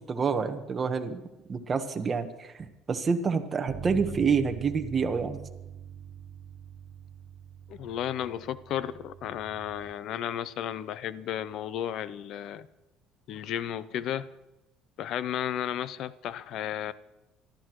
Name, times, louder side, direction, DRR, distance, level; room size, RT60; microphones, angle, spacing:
voice 1, 0.1-1.2 1.5-5.4, right 5 dB, 25° right, 6 dB, 1.2 m, -28 dB
Bass guitar, 3.7-9.9, right 9 dB, 50° right, 0.9 m, -44 dB
voice 2, 7.7-12.7 13.3-14.3 15.0-16.9, left 10 dB, 55° left, 16 dB, 0.6 m, -33 dB
25.5 x 13.0 x 3.1 m, 0.99 s
cardioid pair, 140°, 0 cm